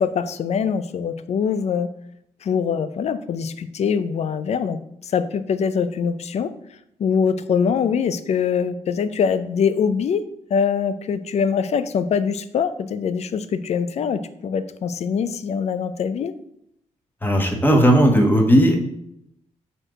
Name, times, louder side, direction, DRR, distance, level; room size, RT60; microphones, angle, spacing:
voice 1, 0.0-1.9 2.4-6.5 7.0-16.3, left 6 dB, 60° left, 12 dB, 0.5 m, -23 dB
voice 2, 17.2-18.8, equal, 15° left, 2 dB, 1.2 m, -16 dB
4.6 x 4.4 x 5.0 m, 0.76 s
cardioid pair, 85°, 13 cm